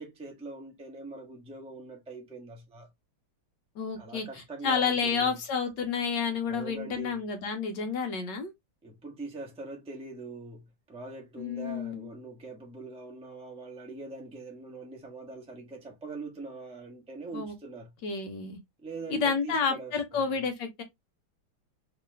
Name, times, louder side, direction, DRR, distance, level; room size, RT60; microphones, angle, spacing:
voice 1, 0.0-2.9 4.0-5.4 6.5-7.2 8.8-17.9 18.8-20.5, right 3 dB, 10° right, 0.4 m, -42 dB
voice 2, 3.8-8.5 11.4-12.1 17.3-17.5 18.0-18.6 19.1-20.8, left 5 dB, 65° left, 1.3 m, -30 dB
3.2 x 3.0 x 3.1 m
omnidirectional pair, 2.2 m